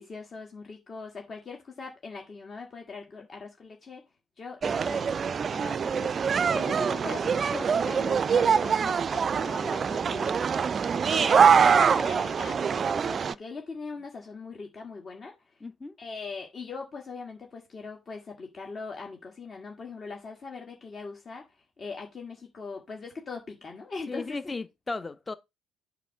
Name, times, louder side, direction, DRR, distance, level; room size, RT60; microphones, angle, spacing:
voice 1, 0.0-4.0 4.4-5.1 5.5-10.4 11.1-15.5 16.0-21.4 21.8-24.4, left 4 dB, 40° left, 1.7 m, -40 dB
sound 1, 4.6-13.3, right 6 dB, 40° right, 0.4 m, -24 dB
voice 2, 15.6-16.0 24.1-25.3, left 3 dB, 25° left, 0.8 m, -36 dB
8.1 x 3.2 x 5.7 m
figure-of-eight pair, 55°, 0 cm